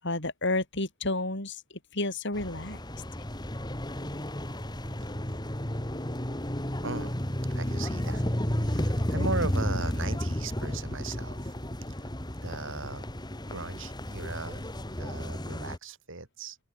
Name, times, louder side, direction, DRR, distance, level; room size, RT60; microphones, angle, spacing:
voice 1, 0.0-2.8, left 2 dB, 55° left, 7.5 m, -31 dB
sound 1, 2.3-15.8, equal, 20° left, 2.7 m, -32 dB
voice 2, 6.8-7.2 7.5-8.3 8.6-11.5 12.4-13.1 13.5-14.7 15.0-16.6, right 3 dB, 60° right, 3.9 m, -37 dB
head